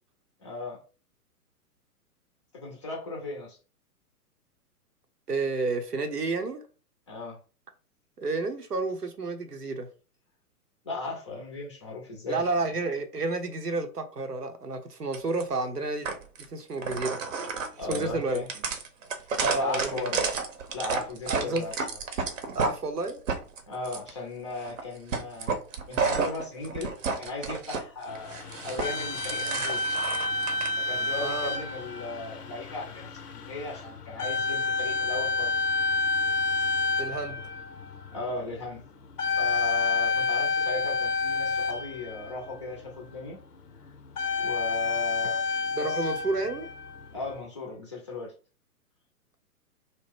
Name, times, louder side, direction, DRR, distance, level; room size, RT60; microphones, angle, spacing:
voice 1, 0.4-0.8 2.5-3.6 7.1-7.4 10.8-12.7 17.8-18.5 19.6-20.3 20.7-21.7 23.7-25.6 25.9-26.9 27.2-29.8 30.8-35.7 38.1-38.8 39.4-43.4 44.4-45.5 45.8-46.1 47.1-48.3, left 3 dB, 20° left, 0.4 m, -37 dB
voice 2, 5.3-6.6 8.2-9.9 12.3-16.1 16.5-17.2 17.9-18.4 19.4-20.1 21.3-21.6 22.5-23.2 31.2-31.5 37.0-37.4 45.8-46.7, right 3 dB, 90° right, 0.7 m, -30 dB
sound 1, 15.1-15.4 16.0-16.4 16.8-22.7 23.1-24.1 24.6-24.8 25.1-27.8 28.1-30.7, right 5 dB, 55° right, 0.7 m, -31 dB
sound 2, 28.1-42.6 44.1-47.4, left 3 dB, 85° left, 0.6 m, -29 dB
2.7 x 2.0 x 3.5 m
figure-of-eight pair, 115°, 46 cm